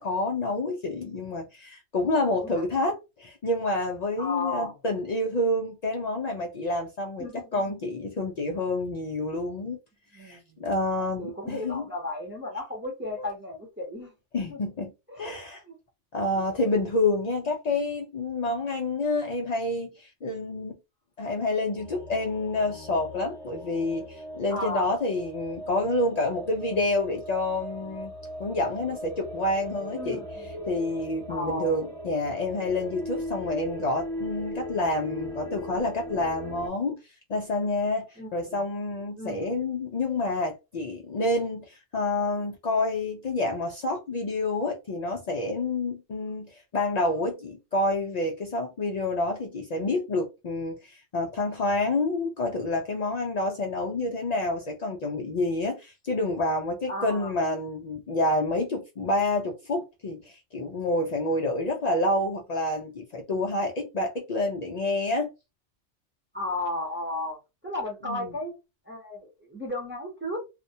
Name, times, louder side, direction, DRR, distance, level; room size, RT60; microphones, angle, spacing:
voice 1, 0.0-7.3 7.5-9.8 10.1-11.9 13.2-13.3 14.3-14.9 15.2-15.6 16.1-20.7 21.2-28.1 28.4-30.2 30.7-65.3 68.1-68.3, left 2 dB, 90° left, 0.3 m, -28 dB
voice 2, 2.0-2.6 4.2-4.8 7.2-7.8 10.1-14.1 14.5-14.6 15.1-15.4 15.6-15.8 24.5-24.9 29.9-30.7 31.3-31.8 38.2-38.7 39.1-39.6 56.9-57.4 66.3-67.4 67.6-68.5 68.8-70.4, left 2 dB, 15° right, 0.5 m, -35 dB
sound 1, 21.8-36.7, equal, 5° left, 0.9 m, -39 dB
2.3 x 2.1 x 2.7 m
omnidirectional pair, 1.3 m